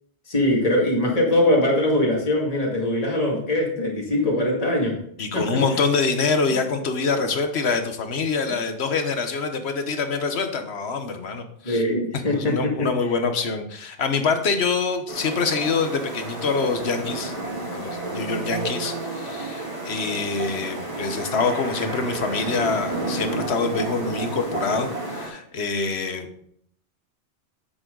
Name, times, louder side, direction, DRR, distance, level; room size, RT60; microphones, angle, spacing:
voice 1, 0.3-5.0 5.3-5.4 11.6-12.9, left 1 dB, 35° left, -2 dB, 2.2 m, -22 dB
voice 2, 5.2-11.8 12.3-17.3 17.7-26.4, left 4 dB, 70° left, 7 dB, 1.4 m, -25 dB
sound 1, 15.1-25.3, right 2 dB, 25° right, 2.9 m, -31 dB
9.9 x 7.8 x 3.9 m, 0.67 s
omnidirectional pair, 1.1 m